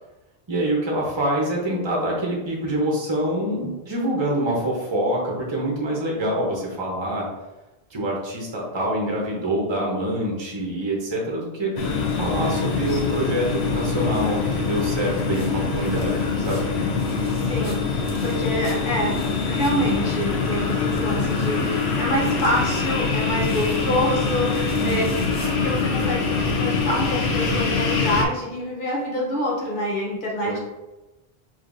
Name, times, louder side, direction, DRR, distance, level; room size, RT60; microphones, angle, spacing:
voice 1, 0.5-7.3 7.9-11.7 12.2-16.6 24.7-25.2 30.4-30.6, right 1 dB, 30° right, -2 dB, 0.9 m, -25 dB
sound 1, 11.8-28.2, left 4 dB, 85° left, 0.9 m, -24 dB
sound 2, 12.0-25.9, left 2 dB, 20° left, 0.7 m, -43 dB
voice 2, 17.3-25.1 25.6-30.6, equal, 55° left, -4 dB, 1.0 m, -26 dB
4.9 x 3.0 x 2.6 m, 1.0 s
omnidirectional pair, 1.0 m